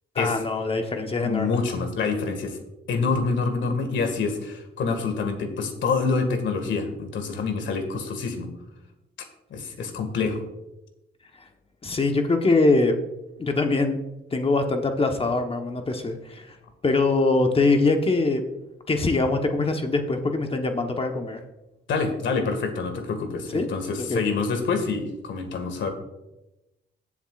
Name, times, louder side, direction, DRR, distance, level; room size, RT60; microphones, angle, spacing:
voice 1, 0.1-1.6 11.8-13.0 13.4-14.0 14.3-16.5 16.8-18.4 18.9-21.4 23.5-23.7 24.1-24.2, left 3 dB, 30° left, 5 dB, 1.1 m, -23 dB
voice 2, 1.2-2.6 2.9-8.5 9.5-10.4 21.9-25.9, left 4 dB, 70° left, 6 dB, 1.9 m, -26 dB
17.0 x 7.3 x 2.5 m, 0.96 s
cardioid pair, 90°, 20 cm